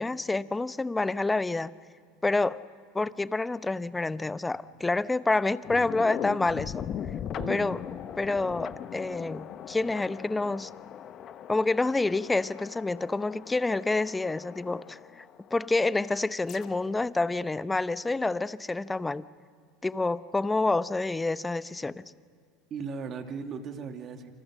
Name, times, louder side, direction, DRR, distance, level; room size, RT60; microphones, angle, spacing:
voice 1, 0.0-1.7 2.2-2.6 2.9-6.8 7.5-7.8 8.2-10.7 11.5-15.2 15.5-19.3 19.8-22.0, left 3 dB, 15° left, 16 dB, 0.8 m, -28 dB
sound 1, 5.6-15.7 16.2-17.1, left 9 dB, 45° left, 1.1 m, -39 dB
voice 2, 7.3-7.8 22.7-24.3, right 5 dB, 40° right, 6 dB, 2.4 m, -37 dB
28.5 x 26.5 x 6.4 m, 2.1 s
hypercardioid pair, 85°, 0 cm